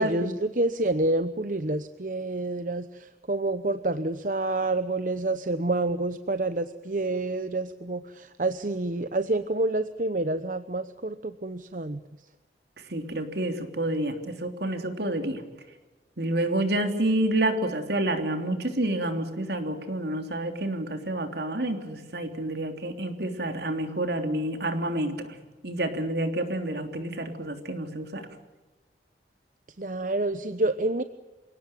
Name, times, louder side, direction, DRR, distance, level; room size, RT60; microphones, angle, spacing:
voice 1, 0.0-12.0 29.8-31.0, right 2 dB, 45° right, 11 dB, 0.9 m, -28 dB
voice 2, 12.9-15.4 16.2-25.4 25.6-28.2, right 1 dB, 70° right, 6 dB, 3.3 m, -29 dB
28.0 x 18.0 x 9.2 m, 1.2 s
head